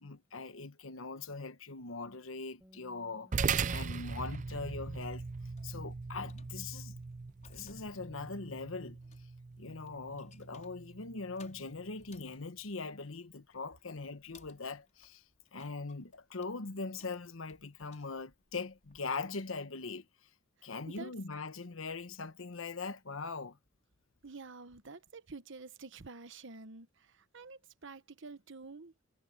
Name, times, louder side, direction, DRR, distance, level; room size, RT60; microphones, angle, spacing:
voice 1, 0.0-3.3 3.7-5.2 5.6-7.0 7.5-9.0 9.6-15.2 15.5-20.1 20.6-23.6, left 4 dB, 80° left, 1.1 m, -41 dB
Bass guitar, 2.6-8.9, equal, 10° right, 5.1 m, -66 dB
sound 1, 3.3-12.0, right 5 dB, 40° right, 0.5 m, -39 dB
sound 2, 5.1-19.1, left 4 dB, 40° left, 5.5 m, -65 dB
voice 2, 24.2-28.9, right 4 dB, 65° right, 1.1 m, -49 dB
head